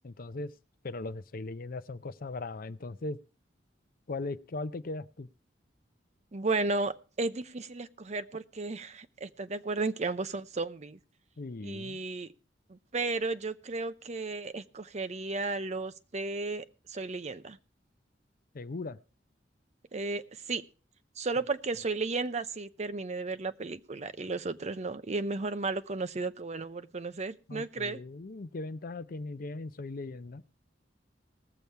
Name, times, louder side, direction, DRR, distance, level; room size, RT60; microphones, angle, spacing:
voice 1, 0.0-0.5 0.8-3.2 4.1-5.3 11.4-12.0 18.5-19.0 27.5-30.4, left 3 dB, 50° left, 0.6 m, -38 dB
voice 2, 6.3-11.0 11.6-12.3 12.7-17.6 19.9-20.6 21.2-28.0, right 3 dB, 40° right, 0.7 m, -34 dB
19.5 x 7.1 x 4.6 m
head